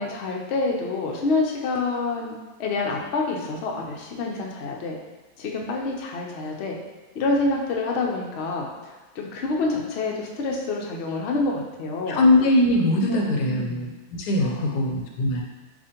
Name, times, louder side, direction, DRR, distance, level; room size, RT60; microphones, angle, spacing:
voice 1, 0.0-5.0 5.4-6.8 7.1-8.7 9.1-12.2 13.1-13.9 14.4-15.0, left 3 dB, 55° left, 0 dB, 0.7 m, -27 dB
voice 2, 12.1-13.9 14.2-15.4, left 1 dB, 90° left, 1 dB, 1.3 m, -21 dB
7.0 x 2.5 x 2.8 m, 1.2 s
omnidirectional pair, 1.7 m